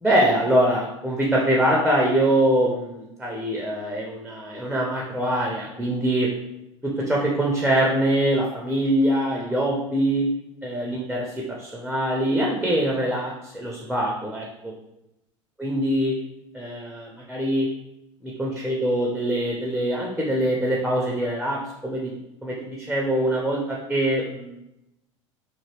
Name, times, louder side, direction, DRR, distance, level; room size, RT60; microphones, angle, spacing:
voice 1, 0.0-6.3 6.8-10.3 10.6-14.7 15.6-16.2 16.5-17.7 18.2-22.1 22.4-24.6, right 1 dB, ahead, -2 dB, 0.5 m, -23 dB
2.8 x 2.6 x 2.9 m, 0.88 s
figure-of-eight pair, 75°, 16 cm